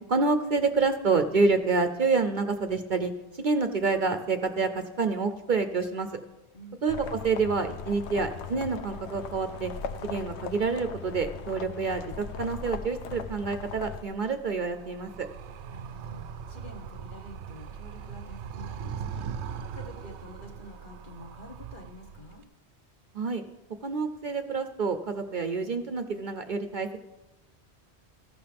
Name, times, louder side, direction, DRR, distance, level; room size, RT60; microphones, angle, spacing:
voice 1, 0.1-6.1 6.8-9.7 10.0-15.3 23.1-23.4 23.8-27.0, right 4 dB, 50° right, 8 dB, 0.7 m, -28 dB
voice 2, 6.5-6.9 15.7-22.4, left 1 dB, 50° left, 2 dB, 1.4 m, -48 dB
sound 1, 6.9-14.0, left 5 dB, 80° left, 1.0 m, -39 dB
Animal, 13.9-22.4, right 7 dB, 80° right, 0.8 m, -40 dB
14.5 x 11.0 x 3.4 m, 1.0 s
omnidirectional pair, 1.2 m